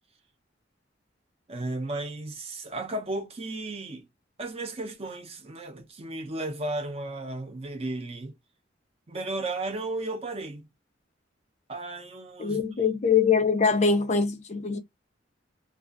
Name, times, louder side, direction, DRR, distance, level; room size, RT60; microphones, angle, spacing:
voice 1, 1.5-4.0 4.4-8.3 9.1-10.7 11.7-12.6, right 2 dB, 30° right, 0.6 m, -34 dB
voice 2, 12.4-14.8, left 5 dB, 35° left, 0.4 m, -23 dB
2.4 x 2.3 x 2.5 m
head